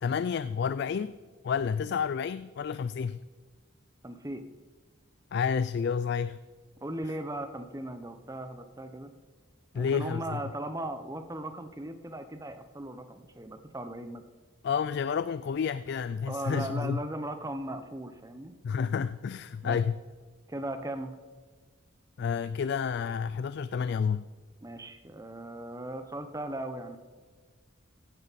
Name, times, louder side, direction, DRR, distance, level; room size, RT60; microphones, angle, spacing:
voice 1, 0.0-1.2 1.4-3.2 5.3-6.4 9.7-10.4 14.6-17.0 18.6-19.9 22.2-24.3, left 6 dB, 55° left, 14 dB, 0.3 m, -30 dB
voice 2, 4.0-4.4 6.8-9.1 9.7-14.2 16.3-18.5 19.6-19.8 20.5-21.1 24.6-27.0, right 1 dB, 15° right, 9 dB, 0.8 m, -38 dB
16.0 x 11.5 x 4.1 m, 1.4 s
head